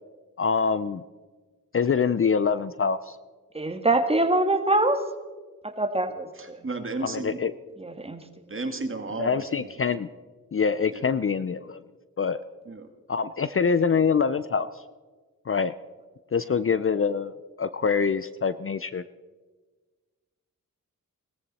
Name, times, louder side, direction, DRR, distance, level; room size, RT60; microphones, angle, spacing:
voice 1, 0.4-1.0 1.7-3.2 7.0-7.5 9.2-10.1 10.5-11.8 12.2-12.4 13.1-14.7 15.5-15.7 16.3-19.0, left 6 dB, 40° left, 14 dB, 0.5 m, -25 dB
voice 2, 3.6-5.0 5.8-6.6 7.8-8.2, right 2 dB, 15° right, 7 dB, 1.7 m, -24 dB
voice 3, 6.3-7.4 8.5-9.7 10.9-11.1 12.7-12.9, right 3 dB, 35° right, 6 dB, 2.1 m, -33 dB
18.0 x 13.5 x 4.2 m, 1.4 s
cardioid pair, 50°, 34 cm